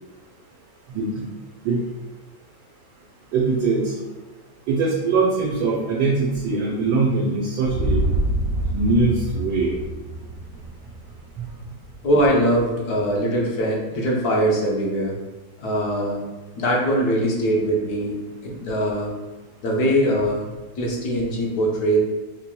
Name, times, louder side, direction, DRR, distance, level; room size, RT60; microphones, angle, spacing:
voice 1, 0.9-1.3 1.6-1.8 3.3-3.9 4.7-8.0 8.7-9.7, right 3 dB, 85° right, -4 dB, 1.3 m, -22 dB
sound 1, 7.6-11.7, right 1 dB, 70° right, 0.9 m, -26 dB
voice 2, 12.0-15.1 15.6-16.2 16.5-18.2 18.4-19.1 19.6-20.4 20.8-22.0, equal, 70° left, -2 dB, 1.3 m, -22 dB
4.5 x 2.8 x 2.2 m, 1.2 s
omnidirectional pair, 1.8 m